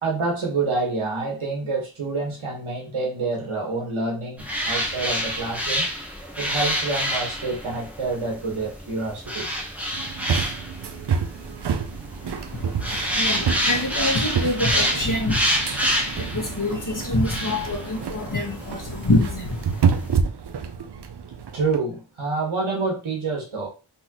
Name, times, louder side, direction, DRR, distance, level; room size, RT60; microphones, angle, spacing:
voice 1, 0.0-5.8 6.4-9.5 21.5-23.7, right 3 dB, 75° right, 0 dB, 1.7 m, -27 dB
sound 1, 4.4-20.2, equal, 5° right, 1.2 m, -28 dB
sound 2, 9.9-21.8, right 6 dB, 55° right, 0.7 m, -29 dB
voice 2, 12.2-20.1, left 1 dB, 40° left, 0 dB, 1.7 m, -26 dB
3.9 x 3.8 x 3.0 m, 0.32 s
cardioid pair, 45°, 48 cm